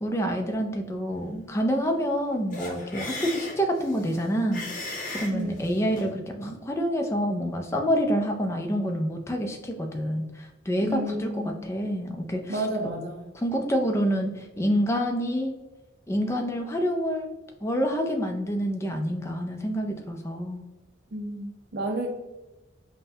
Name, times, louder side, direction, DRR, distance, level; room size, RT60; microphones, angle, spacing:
voice 1, 0.0-4.9 5.1-12.6 13.3-15.5 16.1-17.3 17.6-20.6, equal, 15° left, 3 dB, 0.4 m, -27 dB
sound 1, 2.5-6.1, left 2 dB, 45° left, 0.8 m, -37 dB
voice 2, 5.3-5.7 10.8-11.6 12.5-13.3 21.1-22.1, right 1 dB, 55° right, 2 dB, 0.5 m, -31 dB
5.4 x 2.1 x 2.8 m, 1.0 s
head